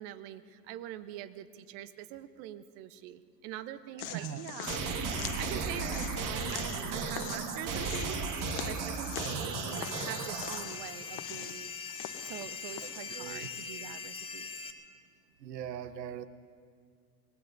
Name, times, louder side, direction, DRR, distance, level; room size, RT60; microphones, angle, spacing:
voice 1, 0.0-8.2 8.6-11.7 12.2-14.5, right 12 dB, 60° right, 12 dB, 1.1 m, -44 dB
sound 1, 4.0-13.7, left 13 dB, 50° left, 1.0 m, -44 dB
sound 2, 4.6-10.6, right 4 dB, 40° right, 1.9 m, -35 dB
sound 3, 9.7-14.7, left 5 dB, 10° left, 1.2 m, -42 dB
voice 2, 13.1-13.5 15.4-16.3, right 10 dB, 85° right, 13 dB, 0.8 m, -40 dB
24.5 x 22.0 x 2.7 m, 2.1 s
hypercardioid pair, 80°, 48 cm